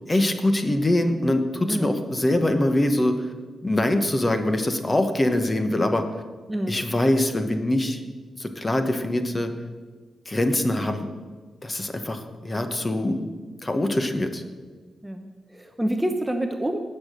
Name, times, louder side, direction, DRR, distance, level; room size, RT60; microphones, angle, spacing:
voice 1, 0.1-3.3 3.6-6.0 6.7-8.0 8.3-9.5 10.3-11.1 11.6-13.3 13.6-14.4, left 1 dB, 20° left, 7 dB, 1.0 m, -23 dB
voice 2, 15.0-16.8, right 1 dB, 10° right, 5 dB, 0.8 m, -27 dB
18.5 x 6.6 x 6.6 m, 1.4 s
wide cardioid pair, 145°, 0 cm